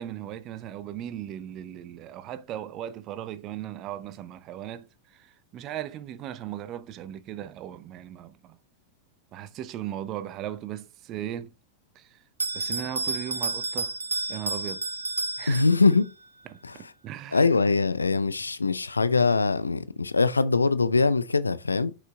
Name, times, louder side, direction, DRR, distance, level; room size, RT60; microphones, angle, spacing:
voice 1, 0.0-8.6 9.3-11.5 11.9-12.2 12.5-13.9 14.3-14.8 15.4-15.6 16.5-17.5, right 11 dB, 35° right, 0.7 m, -37 dB
Bell, 12.4-16.1, right 3 dB, 80° right, 0.6 m, -31 dB
voice 2, 15.5-16.1 16.6-16.9 17.3-21.9, left 4 dB, 80° left, 0.5 m, -23 dB
6.3 x 5.1 x 3.8 m
figure-of-eight pair, 90°, 0 cm